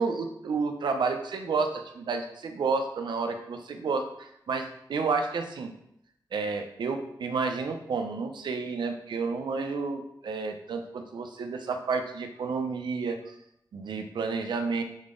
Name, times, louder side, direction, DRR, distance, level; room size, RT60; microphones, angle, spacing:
voice 1, 0.0-5.7 6.3-13.3 13.7-14.8, right 4 dB, 85° right, 5 dB, 0.6 m, -30 dB
7.0 x 3.8 x 3.7 m, 0.76 s
wide cardioid pair, 170°, 8 cm